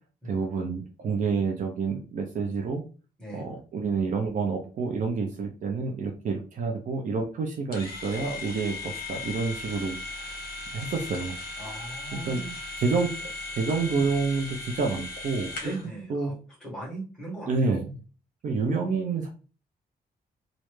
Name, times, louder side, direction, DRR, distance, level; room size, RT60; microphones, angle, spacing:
voice 1, 0.2-2.8 3.3-10.4 10.7-11.4 12.1-12.4 12.8-13.3 13.5-15.5 16.1-16.3 17.5-17.9 18.4-19.3, right 4 dB, 50° right, 2 dB, 0.6 m, -28 dB
sound 1, 7.7-15.9, left 2 dB, 70° left, 1.0 m, -37 dB
voice 2, 11.6-12.6 15.6-17.9, right 2 dB, 5° left, -7 dB, 1.8 m, -39 dB
3.2 x 2.5 x 3.2 m, 0.35 s
wide cardioid pair, 170°, 17 cm